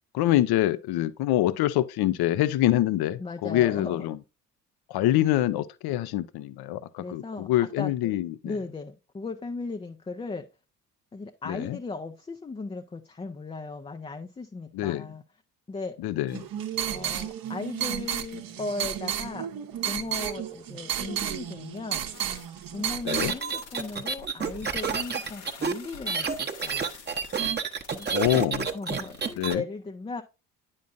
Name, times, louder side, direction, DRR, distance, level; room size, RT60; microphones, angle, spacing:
voice 1, 0.1-4.2 4.9-8.5 11.5-11.8 14.7-15.0 16.0-16.4 23.0-23.3 28.1-28.7 29.4-29.6, left 14 dB, 50° left, 0.7 m, -25 dB
voice 2, 3.2-4.1 7.0-8.1 8.4-10.5 11.1-15.2 15.7-16.0 16.9-19.5 19.9-22.0 22.7-26.9 27.9-28.1 28.3-28.4 28.7-30.2, left 3 dB, 10° left, 0.5 m, -37 dB
sound 1, 16.3-23.4, right 10 dB, 45° right, 0.9 m, -32 dB
sound 2, 22.1-29.4, left 4 dB, 85° left, 1.7 m, -47 dB
sound 3, 23.1-29.6, right 5 dB, 20° right, 0.9 m, -29 dB
9.2 x 5.6 x 2.5 m
hypercardioid pair, 55°, 48 cm